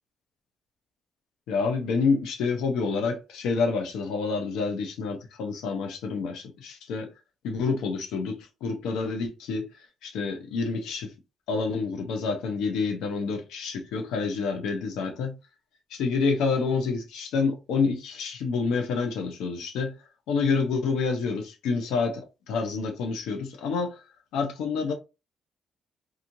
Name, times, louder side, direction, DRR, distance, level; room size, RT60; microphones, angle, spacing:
voice 1, 1.5-7.1 7.4-9.7 10.0-11.1 11.5-15.4 15.9-20.0 20.3-24.0 24.3-24.9, left 4 dB, 90° left, 0.7 m, -28 dB
3.0 x 2.4 x 2.6 m
cardioid pair, 90°, 0 cm